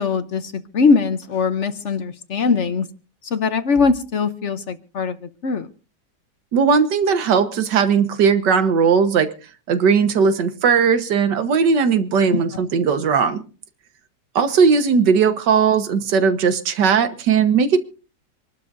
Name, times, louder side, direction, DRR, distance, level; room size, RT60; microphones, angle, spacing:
voice 1, 0.0-2.9 3.2-5.7 12.3-12.4, left 5 dB, 55° left, 11 dB, 0.9 m, -21 dB
voice 2, 6.5-9.3 9.7-13.4 14.4-17.8, right 6 dB, 75° right, 10 dB, 1.8 m, -17 dB
27.0 x 12.0 x 2.6 m, 0.36 s
omnidirectional pair, 1.9 m